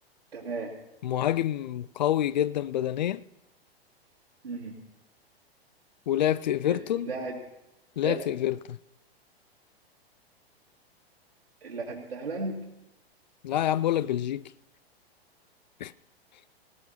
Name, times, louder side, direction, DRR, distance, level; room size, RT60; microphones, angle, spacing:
voice 1, 0.3-0.7 4.4-4.7 6.6-7.4 8.0-8.2 11.6-12.6, right 3 dB, 75° right, 2.6 m, -35 dB
voice 2, 1.0-3.2 6.1-7.1 8.0-8.8 13.4-14.4 15.8-15.9, left 11 dB, 45° left, 0.4 m, -27 dB
20.0 x 18.0 x 2.9 m
figure-of-eight pair, 105°, 31 cm